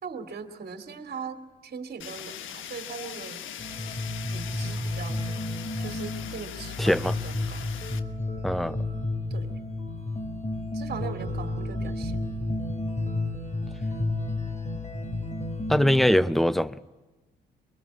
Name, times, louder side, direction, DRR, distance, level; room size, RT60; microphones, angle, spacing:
voice 1, 0.0-3.5 4.3-5.2 5.8-7.7 9.3-9.5 10.7-12.2, right 6 dB, 50° right, 2.7 m, -40 dB
Fire, 2.0-8.0, left 10 dB, 70° left, 1.3 m, -41 dB
sound 1, 3.6-16.1, left 2 dB, 35° left, 5.9 m, -31 dB
voice 2, 6.8-7.1 8.4-8.8 15.7-16.8, equal, ahead, 0.8 m, -22 dB
23.5 x 23.0 x 8.5 m
hypercardioid pair, 55°, 21 cm